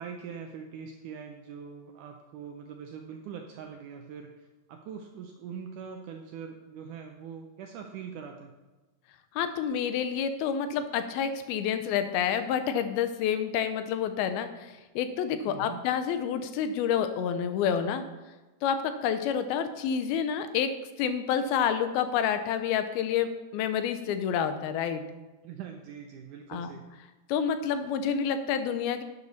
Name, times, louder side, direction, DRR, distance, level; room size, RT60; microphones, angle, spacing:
voice 1, 0.0-8.5 15.5-15.8 25.4-26.9, right 7 dB, 80° right, 4 dB, 1.8 m, -42 dB
voice 2, 9.4-18.0 18.6-20.7 21.0-25.0 26.5-26.7 27.3-29.0, left 8 dB, 85° left, 9 dB, 2.6 m, -28 dB
11.5 x 8.4 x 4.1 m, 1.1 s
omnidirectional pair, 4.3 m